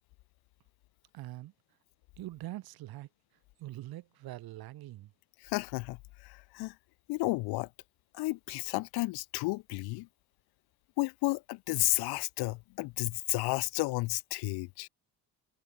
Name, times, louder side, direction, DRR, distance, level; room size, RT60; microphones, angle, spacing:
voice 1, 1.1-1.5 2.2-3.1 3.6-5.1, right 16 dB, 70° right, 3.3 m, -43 dB
voice 2, 5.4-6.0 6.2-6.7 7.1-7.7 8.1-10.1 11.0-14.9, left 22 dB, 85° left, 1.5 m, -32 dB
cardioid pair, 115°, 38 cm